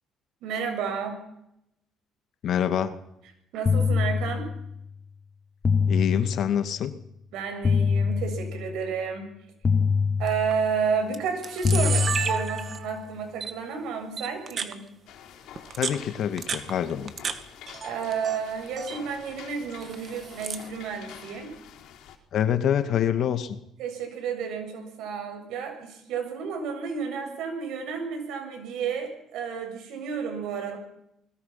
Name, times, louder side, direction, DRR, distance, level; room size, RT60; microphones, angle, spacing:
voice 1, 0.4-1.2 3.5-4.5 7.3-9.3 10.2-14.9 17.8-21.5 23.8-30.8, right 6 dB, 80° right, 5 dB, 7.4 m, -31 dB
voice 2, 2.4-3.0 5.9-6.9 15.8-17.1 22.3-23.6, left 9 dB, 60° left, 10 dB, 2.1 m, -26 dB
sound 1, 3.7-4.8 5.6-6.8 7.6-8.8 9.6-10.8 11.6-12.8, left 5 dB, 30° left, 1.1 m, -25 dB
Camera, 10.3-10.5 11.1-11.2 11.4-13.0 13.4-13.5 14.2-14.7 15.6-17.4 17.7-18.4 18.7-19.0 19.8-20.7, right 6 dB, 40° right, 2.1 m, -31 dB
sound 2, 15.1-22.2, left 9 dB, 80° left, 4.3 m, -47 dB
29.0 x 21.0 x 5.9 m, 0.81 s
cardioid pair, 110°, 0 cm